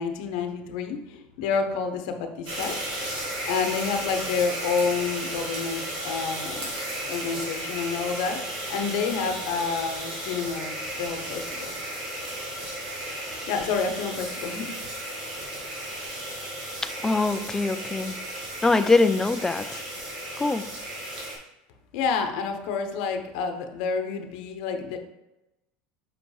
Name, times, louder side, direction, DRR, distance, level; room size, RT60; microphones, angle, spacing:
voice 1, 0.0-2.8 3.5-6.7 7.0-11.8 13.5-14.7 21.9-25.0, left 5 dB, 75° left, 5 dB, 0.9 m, -29 dB
sound 1, 2.5-21.4, right 1 dB, 90° right, 2.2 m, -34 dB
voice 2, 16.8-18.2 18.6-19.8 20.4-20.7, left 3 dB, 10° left, 11 dB, 0.3 m, -23 dB
5.8 x 5.1 x 3.3 m, 0.94 s
supercardioid pair, 125°, 4 cm